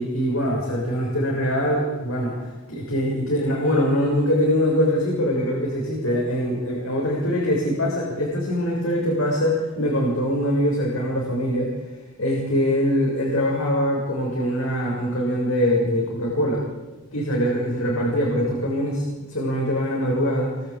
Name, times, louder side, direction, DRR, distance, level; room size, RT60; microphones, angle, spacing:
voice 1, 0.0-2.3 2.7-11.7 12.2-16.6 17.1-20.5, equal, 80° left, -2 dB, 6.9 m, -23 dB
27.0 x 24.5 x 8.8 m, 1.2 s
head